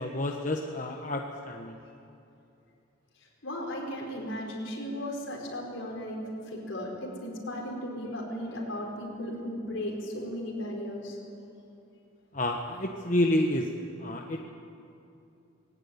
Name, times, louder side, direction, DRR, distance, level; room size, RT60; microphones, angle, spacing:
voice 1, 0.0-1.8 12.3-13.7 14.0-14.4, left 1 dB, 40° left, 2 dB, 1.1 m, -29 dB
voice 2, 3.4-11.2, equal, 65° left, -1 dB, 5.0 m, -36 dB
20.0 x 16.5 x 9.7 m, 2.7 s
head